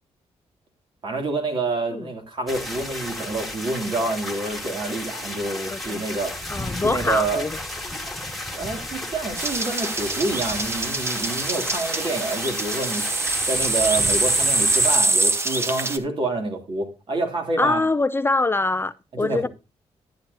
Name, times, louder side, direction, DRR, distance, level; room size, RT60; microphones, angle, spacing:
voice 1, 1.0-6.3 6.8-7.4 8.5-13.1 13.5-17.8 19.2-19.5, right 2 dB, 50° right, 2.8 m, -27 dB
sound 1, 2.5-15.0, left 1 dB, ahead, 1.9 m, -33 dB
voice 2, 5.7-6.0 6.5-7.6 17.6-19.5, left 3 dB, 20° left, 0.4 m, -24 dB
sound 2, 9.4-16.0, right 2 dB, 20° right, 1.0 m, -24 dB
12.0 x 9.0 x 2.7 m
cardioid pair, 110°, 11 cm